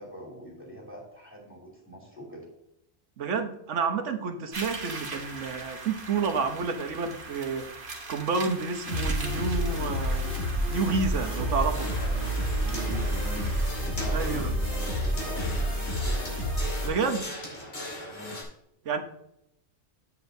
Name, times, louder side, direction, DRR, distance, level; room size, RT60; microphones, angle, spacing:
voice 1, 0.0-2.5 12.0-13.6 14.0-16.3 18.1-18.4, right 1 dB, 10° right, -4 dB, 2.6 m, -43 dB
voice 2, 3.2-10.3 10.7-11.9 14.1-14.5 16.8-17.3 18.8-19.0, right 5 dB, 85° right, 7 dB, 1.3 m, -30 dB
sound 1, 4.5-13.7, right 3 dB, 50° right, 1.2 m, -41 dB
sound 2, 8.9-16.9, equal, 70° left, 4.1 m, -29 dB
sound 3, 11.6-18.4, left 1 dB, 90° left, 2.8 m, -40 dB
9.7 x 8.0 x 2.7 m, 0.79 s
omnidirectional pair, 1.2 m